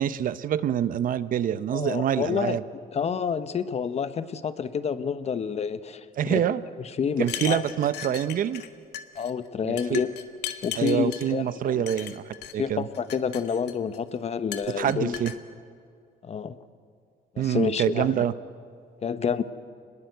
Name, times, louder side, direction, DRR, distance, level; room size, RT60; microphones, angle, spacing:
voice 1, 0.0-2.6 6.2-6.6 7.2-8.6 9.6-10.0 10.8-12.2 12.5-12.9 14.8-15.3 17.4-18.3, right 10 dB, 55° right, 14 dB, 0.8 m, -26 dB
voice 2, 1.7-2.6 2.9-7.6 9.2-10.1 10.6-11.9 12.6-15.2 16.2-16.6 17.3-18.2 19.0-19.4, left 6 dB, 40° left, 12 dB, 1.1 m, -29 dB
sound 1, 7.2-8.7 8.9-9.3 9.8-11.3 11.9-12.5 12.9-14.0 14.5-15.4, left 11 dB, 75° left, 1.5 m, -37 dB
25.5 x 20.5 x 8.1 m, 2.3 s
cardioid pair, 110°, 17 cm